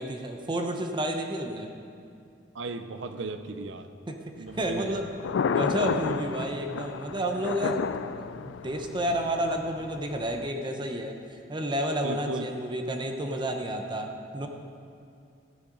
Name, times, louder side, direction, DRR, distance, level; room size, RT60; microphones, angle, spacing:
voice 1, 0.0-1.7 4.1-4.2 4.5-5.1 5.5-14.5, right 1 dB, 25° right, 4 dB, 0.7 m, -31 dB
voice 2, 2.5-3.9 4.4-5.0 12.0-12.5, right 3 dB, 85° right, 9 dB, 0.6 m, -36 dB
Thunder, 4.5-10.5, left 6 dB, 85° left, 0.3 m, -32 dB
14.5 x 10.0 x 3.9 m, 2.4 s
head